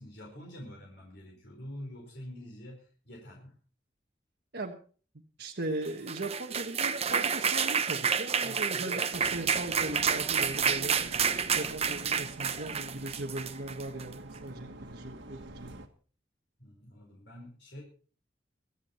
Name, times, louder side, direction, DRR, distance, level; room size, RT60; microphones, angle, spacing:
voice 1, 0.0-3.5 16.6-17.8, left 1 dB, 65° left, -2 dB, 4.8 m, -46 dB
voice 2, 5.4-11.0 11.5-15.8, right 2 dB, 60° right, 1 dB, 1.4 m, -38 dB
sound 1, 5.9-14.1, right 7 dB, 35° right, 1.0 m, -29 dB
sound 2, 9.1-15.9, right 1 dB, 90° right, 1.7 m, -46 dB
24.0 x 8.2 x 4.4 m, 0.41 s
head